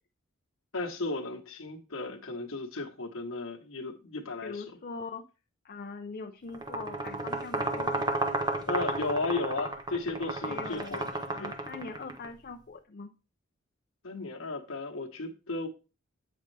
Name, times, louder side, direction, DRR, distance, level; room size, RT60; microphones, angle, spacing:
voice 1, 0.7-4.6 8.7-11.0 11.4-11.7 14.0-15.7, left 3 dB, 80° left, 1.1 m, -35 dB
voice 2, 4.4-5.2 5.6-8.0 10.4-13.1, left 4 dB, 45° left, 0.6 m, -42 dB
sound 1, 6.5-12.3, right 2 dB, 20° right, 0.9 m, -32 dB
8.7 x 5.3 x 3.3 m
head